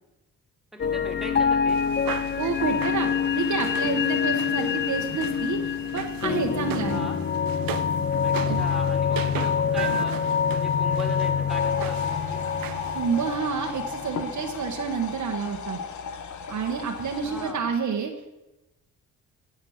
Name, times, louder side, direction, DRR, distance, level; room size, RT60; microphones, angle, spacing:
voice 1, 0.7-1.8 6.9-7.2 8.2-12.4 17.2-17.6, equal, ahead, 3 dB, 2.5 m, -40 dB
sound 1, 0.8-14.2, left 7 dB, 35° left, 0.4 m, -26 dB
sound 2, 1.7-13.3, right 11 dB, 80° right, 0.8 m, -37 dB
voice 2, 2.4-3.1 3.3-7.1 12.9-15.8 16.5-18.1, right 6 dB, 60° right, 2 dB, 1.3 m, -29 dB
sound 3, 11.5-17.5, left 6 dB, 55° left, 1.3 m, -36 dB
17.5 x 7.2 x 6.4 m, 1.0 s
cardioid pair, 130°, 34 cm